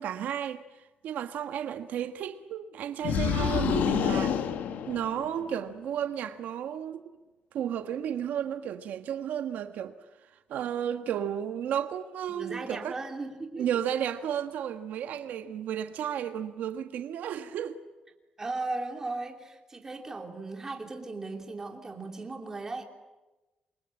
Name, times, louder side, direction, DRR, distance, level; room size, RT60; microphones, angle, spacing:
voice 1, 0.0-4.4 4.9-7.0 7.5-9.9 10.5-12.9 13.6-17.8, right 9 dB, 75° right, 1.4 m, -33 dB
sound 1, 3.0-5.5, left 8 dB, 90° left, 1.8 m, -28 dB
voice 2, 12.3-13.7 18.4-22.8, right 3 dB, 20° right, 3.0 m, -37 dB
28.0 x 23.5 x 8.9 m
cardioid pair, 170°, 3 cm